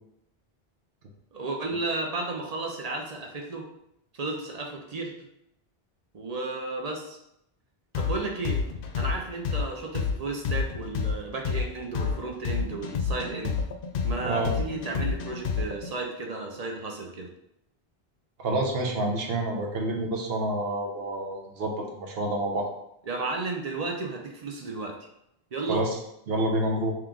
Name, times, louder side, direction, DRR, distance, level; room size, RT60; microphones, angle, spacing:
voice 1, 1.3-3.7 4.1-5.3 6.1-7.2 7.9-8.6 8.9-13.6 14.0-17.3 23.1-25.1 25.5-25.8, right 3 dB, 45° right, 2 dB, 0.7 m, -33 dB
sound 1, 7.9-15.9, left 5 dB, 65° left, 0.7 m, -29 dB
voice 2, 18.4-22.7 25.7-26.0 26.3-26.9, right 1 dB, 70° right, 1 dB, 1.0 m, -28 dB
3.6 x 3.0 x 3.6 m, 0.80 s
omnidirectional pair, 1.0 m